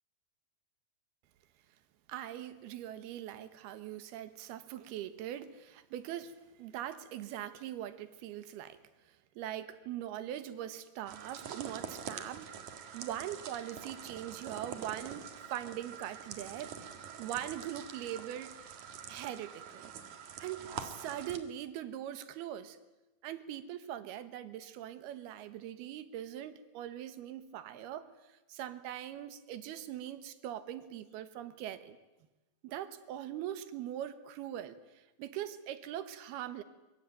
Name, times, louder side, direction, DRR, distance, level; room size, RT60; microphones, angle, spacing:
voice 1, 2.1-8.8 9.1-12.5 12.9-16.8 17.2-18.6 19.1-19.9 20.4-22.8 23.2-32.0 32.6-36.6, right 11 dB, 90° right, 12 dB, 3.2 m, -42 dB
sound 1, 11.1-21.4, right 7 dB, 55° right, 2.8 m, -45 dB
23.5 x 23.5 x 8.9 m, 1.1 s
omnidirectional pair, 4.4 m